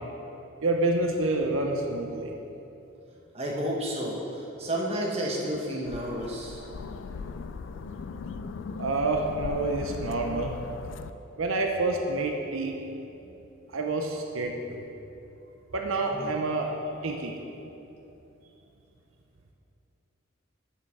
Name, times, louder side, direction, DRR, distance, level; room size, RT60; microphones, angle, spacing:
voice 1, 0.6-2.3 8.8-10.6 11.4-12.8 13.7-14.8 15.7-16.8 17.0-17.4, right 2 dB, 80° right, 2 dB, 0.7 m, -28 dB
voice 2, 3.3-4.2 4.6-6.6 16.1-16.3, equal, 30° right, -2 dB, 1.3 m, -31 dB
sound 1, 5.9-11.1, left 4 dB, 65° left, 0.3 m, -38 dB
7.9 x 6.7 x 6.4 m, 2.9 s
head